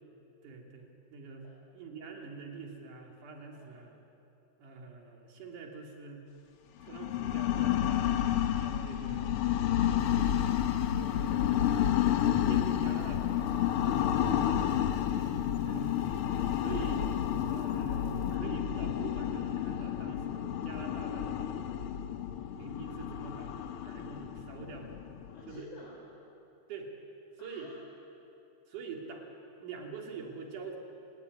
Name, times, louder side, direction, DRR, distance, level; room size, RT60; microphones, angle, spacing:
voice 1, 0.4-1.5 1.7-4.0 4.6-6.3 6.8-8.1 8.5-9.4 10.4-11.8 12.5-14.3 15.6-16.0 16.6-17.0 17.5-21.8 22.5-23.5 23.9-24.9 25.5-25.7 26.7-26.9 27.4-27.7 28.7-29.3 29.6-30.8, right 5 dB, 70° right, 1 dB, 4.3 m, -45 dB
sound 1, 6.8-25.6, left 10 dB, 65° left, 1.3 m, -30 dB
sound 2, 10.0-18.4, right 2 dB, 50° right, 2.7 m, -54 dB
voice 2, 14.5-15.4 16.6-16.9 19.6-19.9 25.3-26.0 27.4-27.7, left 2 dB, 50° left, -3 dB, 5.1 m, -52 dB
29.5 x 19.0 x 9.6 m, 2.8 s
omnidirectional pair, 3.8 m